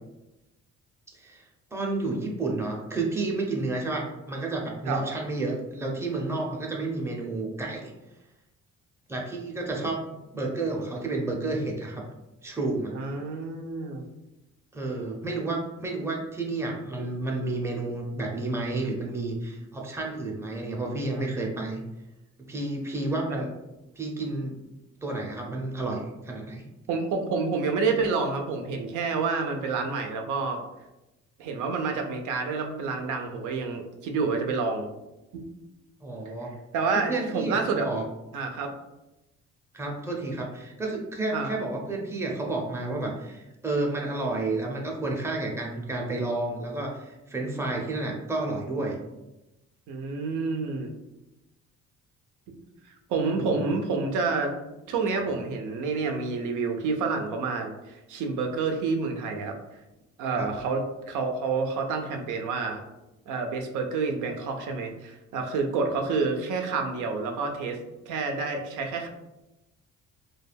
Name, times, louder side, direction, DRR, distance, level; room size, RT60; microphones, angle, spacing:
voice 1, 1.1-1.5 1.7-7.9 9.1-12.0 12.4-12.9 14.7-21.8 22.5-23.5 24.0-24.6 25.0-26.6 36.0-36.5 37.1-38.0 39.7-49.0 53.3-53.7 60.4-60.5, right 2 dB, 10° right, -1 dB, 0.5 m, -31 dB
voice 2, 12.9-14.0 23.3-23.4 26.9-30.6 31.4-34.9 35.3-35.5 36.7-37.9 38.3-38.7 41.3-41.6 49.9-50.9 52.5-52.6 53.1-54.6 54.9-59.6 60.2-62.8 63.3-67.8 68.1-69.1, right 4 dB, 80° right, 4 dB, 0.5 m, -28 dB
2.3 x 2.2 x 3.3 m, 0.96 s
cardioid pair, 90°, 30 cm